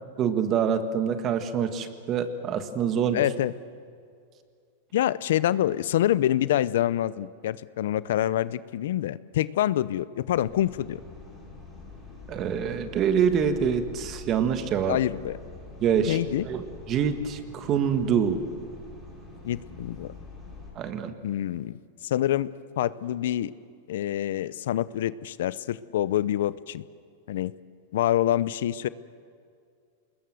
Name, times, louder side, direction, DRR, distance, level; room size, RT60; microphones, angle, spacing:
voice 1, 0.2-3.2 12.3-15.0 15.8-18.4 20.7-21.1, right 7 dB, 25° right, 10 dB, 1.6 m, -26 dB
voice 2, 3.1-3.5 4.9-11.0 14.9-15.4 16.1-16.5 19.4-20.1 21.2-22.5 22.8-23.5 23.9-26.8 27.3-27.5 27.9-28.9, left 12 dB, 70° left, 18 dB, 0.7 m, -26 dB
sound 1, 10.3-20.7, left 4 dB, 5° right, 6.6 m, -45 dB
26.5 x 21.0 x 7.8 m, 2.3 s
supercardioid pair, 165°, 0 cm